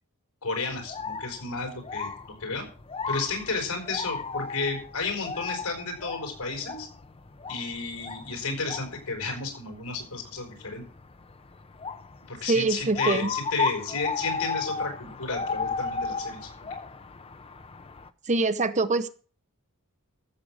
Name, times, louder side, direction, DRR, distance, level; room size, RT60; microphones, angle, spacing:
voice 1, 0.4-2.7 3.1-6.9 7.5-10.8 12.3-16.5, left 3 dB, 90° left, 3 dB, 5.3 m, -32 dB
sound 1, 0.7-18.1, left 5 dB, 25° left, 0.7 m, -35 dB
voice 2, 12.5-13.3 18.3-19.1, right 3 dB, 35° right, 11 dB, 0.8 m, -24 dB
14.0 x 7.6 x 6.4 m, 0.41 s
head